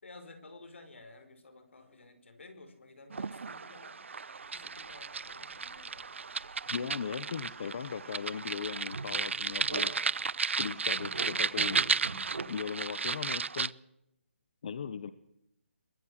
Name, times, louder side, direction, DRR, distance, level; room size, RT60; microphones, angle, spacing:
voice 1, 0.0-4.0 4.5-6.1, left 3 dB, 65° left, 10 dB, 4.9 m, -53 dB
sound 1, 3.1-13.7, right 5 dB, 65° right, 0.7 m, -34 dB
sound 2, 4.4-6.0 6.3-10.4 10.9-12.4, right 3 dB, 90° right, 5.4 m, -44 dB
voice 2, 6.7-9.9 10.6-11.8 12.5-13.7 14.6-15.1, left 7 dB, 35° left, 14 dB, 0.9 m, -38 dB
24.0 x 20.5 x 6.5 m, 0.82 s
hypercardioid pair, 175°, 7 cm